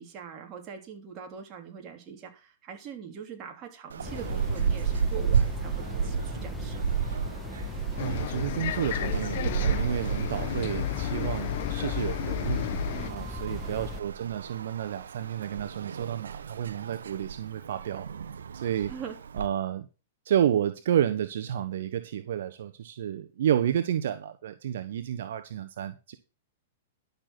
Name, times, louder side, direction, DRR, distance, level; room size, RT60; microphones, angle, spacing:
voice 1, 0.0-6.9 12.9-13.3 18.9-19.2, right 7 dB, 30° right, 3.3 m, -42 dB
sound 1, 3.9-19.5, right 6 dB, 90° right, 0.9 m, -32 dB
sound 2, 4.0-14.0, left 4 dB, 10° left, 0.7 m, -39 dB
Bus, 8.0-13.1, left 13 dB, 60° left, 1.0 m, -33 dB
voice 2, 8.0-12.6 13.1-18.1 18.5-18.9 19.3-19.9 20.2-26.1, right 10 dB, 70° right, 1.1 m, -30 dB
12.0 x 6.8 x 6.0 m
hypercardioid pair, 135°, 0 cm